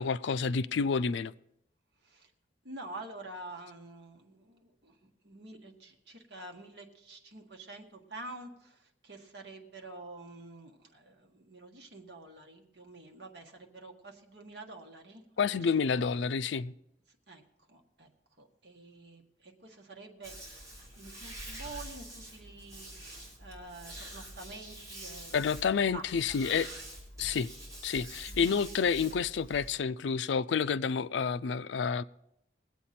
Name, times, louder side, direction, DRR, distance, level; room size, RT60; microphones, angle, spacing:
voice 1, 0.0-1.3 15.4-16.7 25.3-26.7 27.2-27.5 27.8-32.0, left 6 dB, 80° left, 0.4 m, -29 dB
voice 2, 2.6-5.0 5.2-15.2 15.9-16.0 17.3-17.4 17.7-18.1 18.4-20.3 21.0-26.4 28.3-28.5, right 2 dB, 65° right, 1.6 m, -48 dB
sound 1, 20.2-29.8, right 1 dB, 20° right, 3.5 m, -46 dB
21.0 x 8.2 x 4.3 m
head